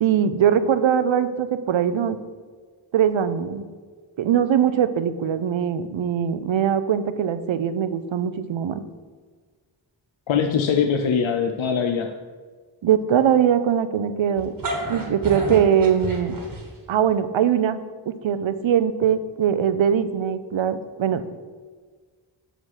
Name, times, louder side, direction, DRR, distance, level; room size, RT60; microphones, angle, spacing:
voice 1, 0.0-2.2 2.9-3.7 4.2-8.8 12.8-14.5 14.9-16.3 16.9-17.8 18.1-21.4, right 8 dB, 70° right, 12 dB, 0.6 m, -21 dB
voice 2, 10.3-12.1, left 6 dB, 75° left, 5 dB, 0.6 m, -22 dB
sound 1, 14.4-17.0, right 1 dB, 45° right, 1.4 m, -31 dB
6.2 x 5.1 x 5.6 m, 1.5 s
wide cardioid pair, 80°, 48 cm